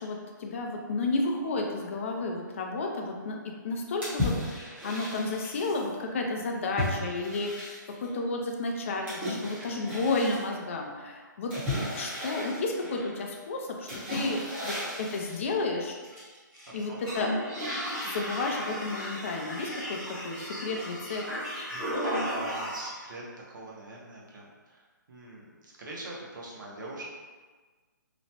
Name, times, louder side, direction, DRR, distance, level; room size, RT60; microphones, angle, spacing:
voice 1, 0.0-11.5 11.9-14.4 14.6-16.0 16.7-17.3 18.1-21.2, left 3 dB, 40° left, 1 dB, 0.4 m, -32 dB
sound 1, 4.0-5.8 6.8-8.1 9.1-10.4 11.5-13.2 13.9-15.4 16.0-16.7 17.0-23.0, left 1 dB, 10° right, 0.8 m, -34 dB
voice 2, 9.4-9.9 16.7-17.0 21.7-23.2 23.5-24.8 25.1-27.0, right 2 dB, 70° right, -3 dB, 0.8 m, -44 dB
2.9 x 2.1 x 2.8 m, 1.4 s
hypercardioid pair, 155°, 11 cm